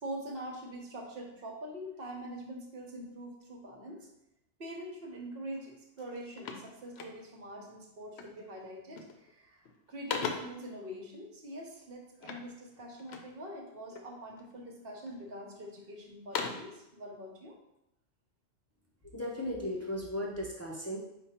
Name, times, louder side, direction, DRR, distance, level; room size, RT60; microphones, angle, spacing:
voice 1, 0.0-4.1 4.6-17.5, right 1 dB, 50° right, 0 dB, 1.0 m, -44 dB
sound 1, 5.5-5.7 6.0-7.5 8.2-8.5 8.8-9.3 9.7-10.7 12.2-13.4 13.9-14.5 15.1-15.7 16.1-16.8, left 6 dB, 65° left, 0.8 m, -40 dB
voice 2, 19.1-21.0, left 1 dB, 25° left, -3 dB, 0.3 m, -36 dB
5.1 x 2.3 x 4.3 m, 0.85 s
omnidirectional pair, 1.3 m